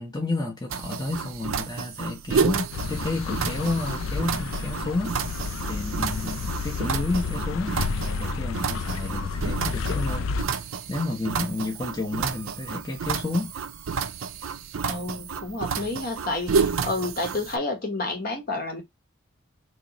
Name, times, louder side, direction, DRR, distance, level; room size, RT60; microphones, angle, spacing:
voice 1, 0.0-13.5, left 2 dB, 20° left, 0.8 m, -31 dB
sound 1, 0.7-17.6, right 6 dB, 90° right, 0.5 m, -30 dB
sound 2, 2.7-10.4, left 5 dB, 90° left, 0.4 m, -31 dB
voice 2, 14.8-18.8, left 2 dB, 45° left, 1.2 m, -30 dB
3.0 x 3.0 x 3.9 m
head